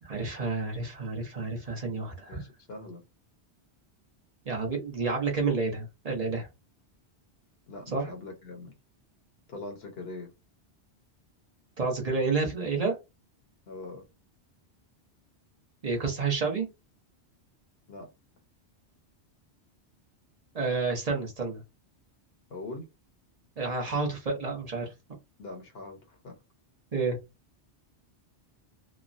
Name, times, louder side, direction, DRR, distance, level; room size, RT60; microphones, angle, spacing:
voice 1, 0.0-2.4 4.5-6.5 7.9-8.1 11.8-13.0 15.8-16.7 20.5-21.6 23.6-24.9 26.9-27.2, right 4 dB, 40° right, 0.7 m, -30 dB
voice 2, 2.3-3.0 7.7-8.7 9.5-10.3 13.7-14.0 17.9-18.1 22.5-22.9 25.4-26.4, left 2 dB, 65° left, 0.9 m, -42 dB
3.0 x 2.0 x 2.5 m
omnidirectional pair, 1.1 m